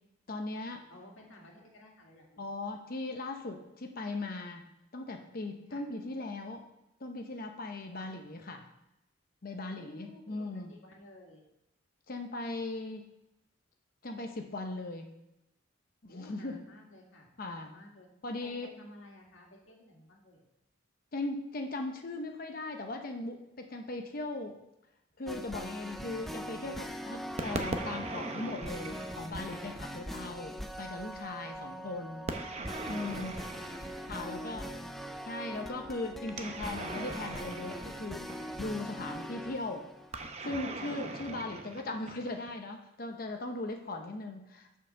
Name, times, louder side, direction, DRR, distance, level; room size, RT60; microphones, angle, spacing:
voice 1, 0.3-0.8 2.4-4.6 4.9-6.6 7.0-8.7 9.4-10.7 12.1-13.0 14.0-15.1 16.0-16.6 17.4-17.7 18.2-18.7 21.1-24.6 25.2-32.3 32.9-33.3 34.1-34.7 35.3-39.9 40.4-44.8, left 2 dB, 45° left, 4 dB, 0.7 m, -38 dB
voice 2, 0.9-2.6 5.7-5.8 8.0-8.1 9.6-11.4 16.1-18.1 18.4-20.4 31.5-31.9 32.9-33.8 34.1-34.9 41.1-41.2, left 1 dB, 80° left, 0 dB, 2.0 m, -54 dB
sound 1, 25.3-40.5, equal, ahead, 0.4 m, -42 dB
sound 2, 27.4-30.0 32.3-34.6 36.3-38.7 40.1-42.6, right 2 dB, 35° right, 0.7 m, -40 dB
7.0 x 5.6 x 6.3 m, 0.87 s
head